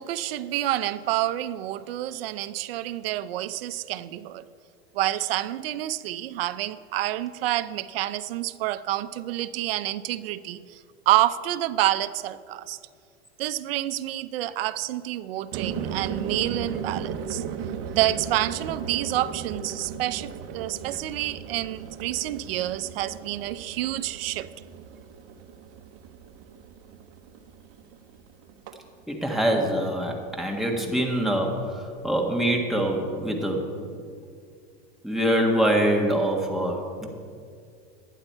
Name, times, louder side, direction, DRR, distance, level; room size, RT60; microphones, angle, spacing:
voice 1, 0.0-4.4 4.9-10.6 11.1-12.8 13.4-17.4 17.9-24.5, right 14 dB, 80° right, 15 dB, 0.6 m, -28 dB
sound 1, 15.5-30.1 30.3-31.0, right 7 dB, 50° right, 0.9 m, -37 dB
voice 2, 29.1-33.7 35.0-37.1, right 1 dB, ahead, -1 dB, 1.6 m, -24 dB
11.5 x 10.0 x 4.5 m, 2.2 s
supercardioid pair, 120°, 29 cm